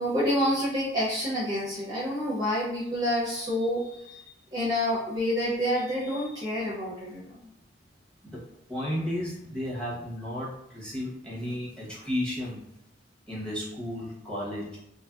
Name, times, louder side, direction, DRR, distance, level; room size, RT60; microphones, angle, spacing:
voice 1, 0.0-4.2 4.5-7.4, equal, 20° right, -7 dB, 0.5 m, -28 dB
voice 2, 8.7-12.6 13.3-14.8, left 1 dB, 5° left, -7 dB, 0.8 m, -33 dB
2.8 x 2.5 x 2.3 m, 0.80 s
head